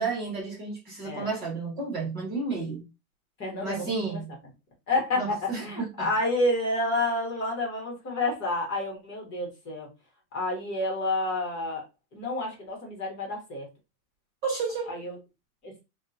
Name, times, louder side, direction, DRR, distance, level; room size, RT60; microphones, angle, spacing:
voice 1, 0.0-2.8 3.6-4.4 5.2-6.1 14.4-15.0, right 4 dB, 25° right, 1.2 m, -32 dB
voice 2, 3.4-4.2 4.9-9.9 10.3-11.8 12.1-13.7 14.9-15.2 15.6-15.8, left 2 dB, 25° left, 1.3 m, -29 dB
3.6 x 2.4 x 2.7 m
supercardioid pair, 155°, 42 cm